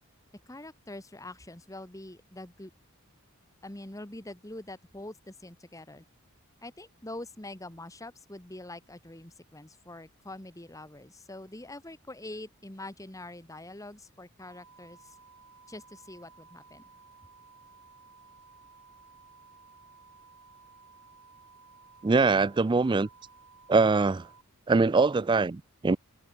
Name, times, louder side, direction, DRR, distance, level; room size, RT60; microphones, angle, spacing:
voice 1, 0.5-2.7 3.6-6.0 6.6-15.1 15.7-16.8, left 1 dB, 15° left, 1.4 m, -44 dB
sound 1, 14.4-24.4, right 4 dB, 90° right, 4.7 m, -56 dB
voice 2, 22.0-23.1 23.7-24.3 24.7-26.0, right 3 dB, 20° right, 0.3 m, -23 dB
open air
head